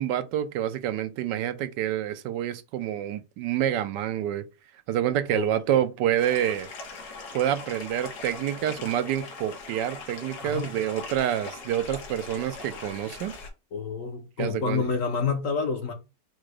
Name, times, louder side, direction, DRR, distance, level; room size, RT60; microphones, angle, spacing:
voice 1, 0.0-4.5 4.9-6.7 7.3-13.3 14.4-14.9, right 11 dB, 80° right, 1.2 m, -27 dB
sound 1, 6.2-13.5, left 4 dB, 85° left, 1.8 m, -41 dB
voice 2, 10.4-10.8 13.7-15.9, left 5 dB, 60° left, 1.0 m, -28 dB
4.9 x 2.2 x 4.7 m
omnidirectional pair, 1.9 m